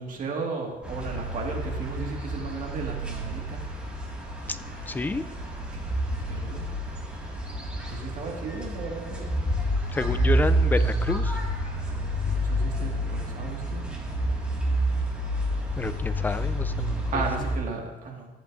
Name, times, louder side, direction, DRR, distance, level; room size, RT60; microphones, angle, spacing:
voice 1, 0.0-3.6 5.7-5.8 6.3-6.7 7.9-9.3 12.2-13.8 17.1-18.3, right 4 dB, 50° right, 0 dB, 1.9 m, -35 dB
sound 1, 0.8-17.6, equal, 5° right, 1.9 m, -29 dB
voice 2, 4.9-5.2 9.9-11.4 15.8-17.2, left 3 dB, 10° left, 12 dB, 0.4 m, -29 dB
14.0 x 8.0 x 2.6 m, 1.2 s
cardioid pair, 110°, 17 cm